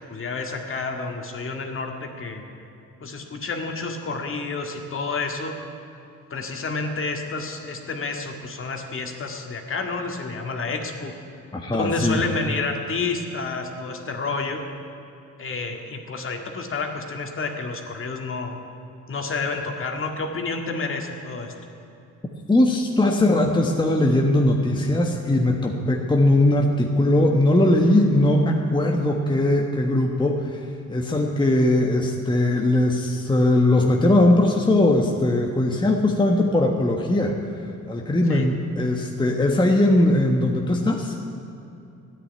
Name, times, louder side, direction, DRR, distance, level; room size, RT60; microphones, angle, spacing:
voice 1, 0.0-2.4 3.0-5.5 6.3-11.1 11.7-14.6 15.4-18.6 19.1-21.5 38.3-38.5, left 3 dB, 45° left, 3 dB, 2.0 m, -29 dB
voice 2, 11.5-12.2 22.5-37.4 37.9-41.2, left 1 dB, 15° left, 1 dB, 1.3 m, -20 dB
13.5 x 9.7 x 9.4 m, 2.8 s
cardioid pair, 90°, 30 cm